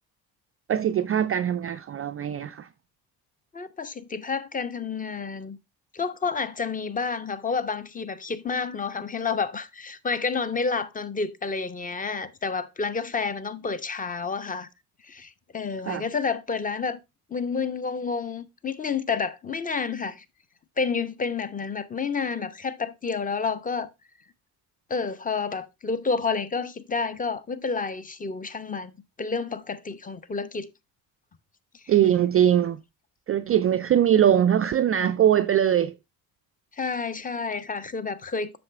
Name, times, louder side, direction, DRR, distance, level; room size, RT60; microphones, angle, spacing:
voice 1, 0.7-2.7 15.9-16.1 31.9-32.8 33.3-35.9, right 10 dB, 30° right, 0.4 m, -21 dB
voice 2, 3.5-5.6 5.9-14.7 15.0-17.0 17.3-20.2 20.8-23.9 24.9-28.9 29.2-30.7 36.7-38.6, left 5 dB, 15° left, 0.8 m, -29 dB
7.6 x 6.2 x 3.3 m
hypercardioid pair, 60°, 50 cm